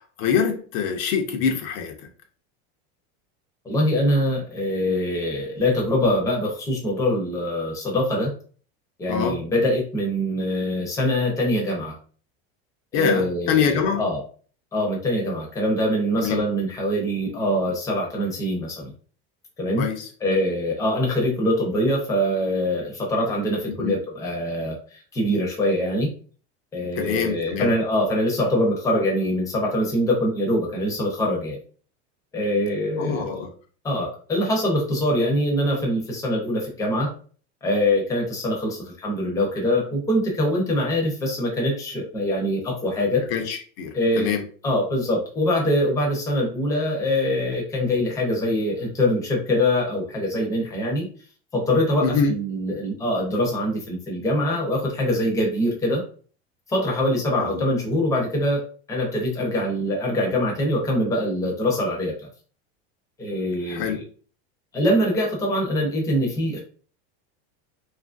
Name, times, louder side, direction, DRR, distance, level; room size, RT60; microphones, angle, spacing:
voice 1, 0.2-2.1 9.1-9.4 12.9-14.0 16.2-16.4 19.8-20.1 23.7-24.0 27.0-27.7 33.0-33.5 43.3-44.4 52.0-52.3 53.4-53.5 57.4-57.6 63.7-64.0, left 7 dB, 60° left, 4 dB, 0.7 m, -25 dB
voice 2, 3.6-8.3 9.0-11.9 12.9-14.2 14.7-18.9 19.6-19.8 20.2-26.1 26.7-31.6 32.3-33.4 33.8-37.1 37.6-43.2 43.9-44.3 44.6-51.1 51.5-56.0 56.7-62.3 63.2-64.0 64.7-66.6, left 1 dB, 10° left, -2 dB, 0.6 m, -23 dB
2.8 x 2.5 x 2.4 m, 0.42 s
supercardioid pair, 155°, 32 cm